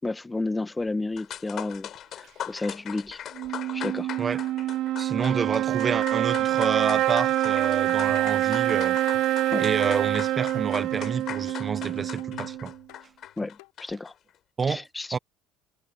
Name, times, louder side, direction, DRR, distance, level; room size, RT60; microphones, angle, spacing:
voice 1, 0.0-1.9 2.2-3.2 3.7-4.1 9.5-9.7 13.4-14.1 14.7-15.1, left 2 dB, 15° left, 1.7 m, -31 dB
sound 1, 0.9-1.0 1.2-14.1, left 10 dB, 50° left, 5.5 m, -40 dB
sound 2, 3.3-12.8, right 14 dB, 65° right, 0.4 m, -26 dB
voice 2, 5.0-9.0 9.6-12.7 14.6-14.8 15.1-15.2, right 5 dB, 25° right, 1.0 m, -29 dB
sound 3, 8.1-13.7, left 24 dB, 85° left, 5.7 m, -50 dB
supercardioid pair, 105°, 0 cm